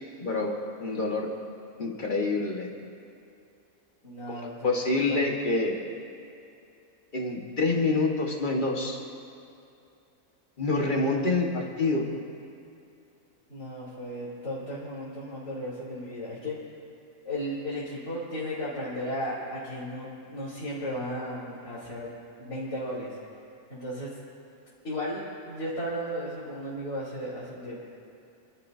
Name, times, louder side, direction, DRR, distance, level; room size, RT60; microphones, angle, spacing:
voice 1, 0.2-0.5 0.8-1.3 1.8-2.7 4.3-5.8 7.1-9.0 10.6-12.1, left 3 dB, 35° left, 0 dB, 1.8 m, -27 dB
voice 2, 4.0-4.8 5.1-5.2 13.5-16.5 17.2-22.1 22.4-23.2 23.7-24.1 24.8-27.8, equal, 50° left, -11 dB, 4.1 m, -35 dB
29.0 x 13.0 x 2.8 m, 2.6 s
omnidirectional pair, 1.5 m